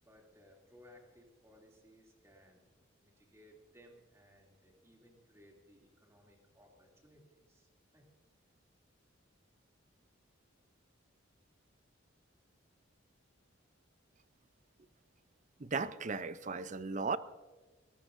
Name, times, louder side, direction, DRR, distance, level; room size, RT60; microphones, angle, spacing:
voice 1, 0.0-2.7 3.0-8.1, equal, 15° right, 0 dB, 2.8 m, -62 dB
voice 2, 15.6-17.2, right 4 dB, 40° right, 14 dB, 0.6 m, -36 dB
20.5 x 20.5 x 2.6 m, 1.3 s
head